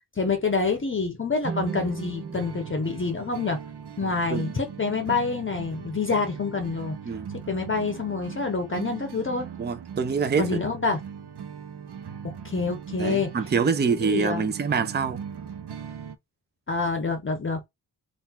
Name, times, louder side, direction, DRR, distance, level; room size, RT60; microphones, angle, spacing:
voice 1, 0.2-3.6 4.0-7.0 7.5-9.5 10.4-11.0 12.2-13.3 14.0-14.5 16.7-17.7, left 4 dB, 30° left, 0.7 m, -27 dB
sound 1, 1.4-4.7, right 5 dB, 45° right, 1.2 m, -38 dB
sound 2, 1.7-16.2, right 7 dB, 75° right, 0.7 m, -39 dB
voice 2, 9.6-10.6 13.0-15.2, right 5 dB, 25° right, 0.5 m, -25 dB
3.9 x 2.4 x 4.2 m
wide cardioid pair, 180°, 41 cm